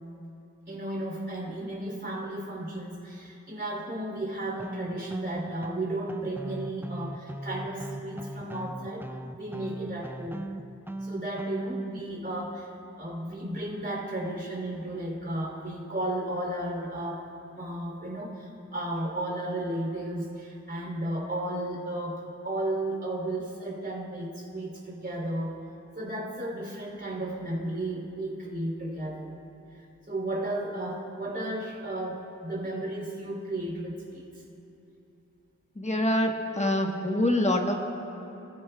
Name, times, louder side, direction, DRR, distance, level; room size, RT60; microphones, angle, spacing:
voice 1, 0.7-9.1 9.3-10.5 11.0-12.7 13.0-17.2 17.6-25.6 25.9-29.3 30.1-34.4, right 1 dB, 35° right, -2 dB, 3.2 m, -34 dB
sound 1, 4.6-12.0, right 1 dB, 5° right, 0.4 m, -39 dB
voice 2, 35.8-37.7, left 1 dB, 20° left, 2 dB, 1.3 m, -25 dB
23.0 x 15.0 x 2.3 m, 3.0 s
wide cardioid pair, 60°, 31 cm